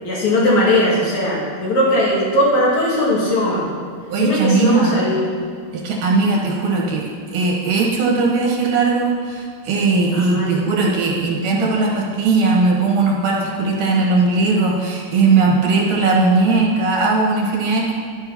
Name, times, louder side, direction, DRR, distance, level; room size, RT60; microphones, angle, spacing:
voice 1, 0.0-3.7 4.2-5.2 10.1-11.3, left 1 dB, 70° left, -7 dB, 3.4 m, -19 dB
voice 2, 4.1-5.2 5.7-17.9, right 3 dB, 85° right, -2 dB, 3.0 m, -18 dB
11.5 x 9.0 x 2.9 m, 2.2 s
omnidirectional pair, 3.6 m